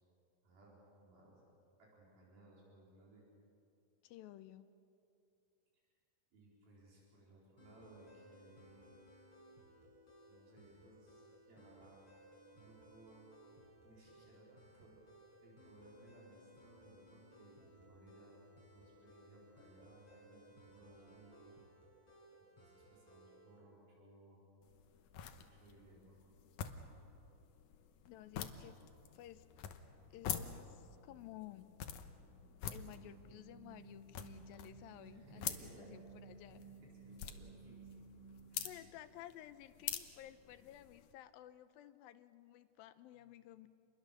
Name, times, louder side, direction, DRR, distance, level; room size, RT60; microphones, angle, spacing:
voice 1, 0.4-1.4 1.8-3.2 6.3-8.9 10.3-12.1 12.5-13.3 13.8-15.0 15.4-18.4 18.7-21.5 22.5-24.4 25.4-26.2 35.0-35.9 36.6-37.8 38.5-38.9 40.5-40.7 43.1-43.3, right 2 dB, 85° right, -5 dB, 6.3 m, -62 dB
voice 2, 4.0-4.7 28.1-28.8 29.1-29.5 30.1-31.8 32.7-36.6 38.6-43.7, left 13 dB, 85° left, 11 dB, 2.6 m, -54 dB
sound 1, 7.6-23.6, equal, 35° left, 7.1 m, -62 dB
sound 2, 24.6-41.1, left 9 dB, 70° left, 2.2 m, -48 dB
sound 3, 32.7-38.7, right 5 dB, 65° right, 6.3 m, -57 dB
28.0 x 22.0 x 6.8 m, 2.6 s
omnidirectional pair, 4.1 m